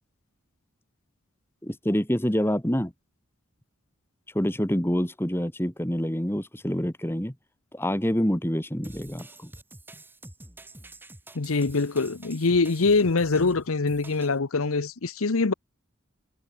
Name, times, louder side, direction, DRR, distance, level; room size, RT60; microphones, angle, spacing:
voice 1, 1.6-2.9 4.3-7.3 7.7-9.5, equal, 10° left, 1.5 m, -26 dB
sound 1, 8.8-14.4, right 1 dB, 10° right, 3.0 m, -47 dB
voice 2, 11.3-15.5, left 3 dB, 80° left, 0.9 m, -24 dB
head